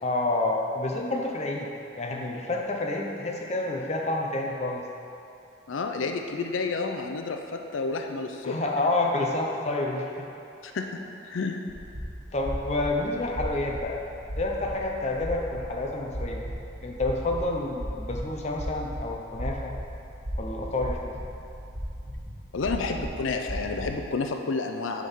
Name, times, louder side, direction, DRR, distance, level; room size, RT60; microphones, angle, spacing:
voice 1, 0.0-1.7 2.0-4.9 8.4-10.3 12.3-14.0 14.4-16.4 16.8-19.7 20.4-21.3, left 2 dB, 35° left, 0 dB, 0.6 m, -29 dB
voice 2, 5.7-8.6 10.6-11.0 11.3-11.6 22.5-25.1, left 4 dB, 85° left, 4 dB, 0.5 m, -30 dB
sound 1, 11.7-24.2, equal, 35° right, 1.3 m, -36 dB
7.4 x 3.6 x 5.5 m, 2.7 s
head